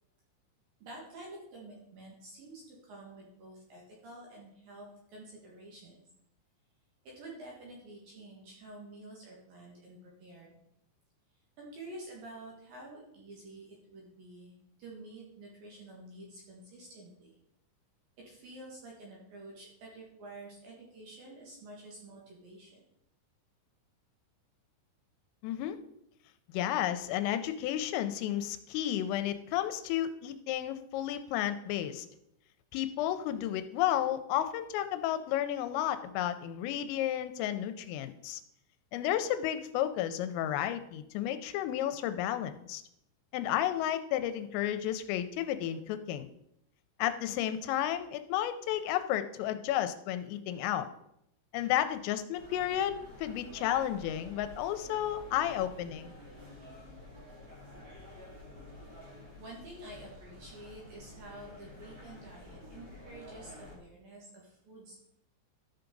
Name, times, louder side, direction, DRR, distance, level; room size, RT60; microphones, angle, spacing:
voice 1, 0.8-5.9 7.0-10.6 11.6-17.3 18.2-22.8 59.4-65.0, right 2 dB, 60° right, -3 dB, 2.7 m, -49 dB
voice 2, 25.4-25.8 26.5-32.1 32.7-38.4 38.9-42.8 43.3-46.3 47.0-50.9 51.5-56.1, left 11 dB, 85° left, 10 dB, 3.1 m, -32 dB
sound 1, 52.3-63.8, left 1 dB, 35° right, 1.5 m, -50 dB
13.5 x 5.8 x 3.9 m, 0.78 s
omnidirectional pair, 5.9 m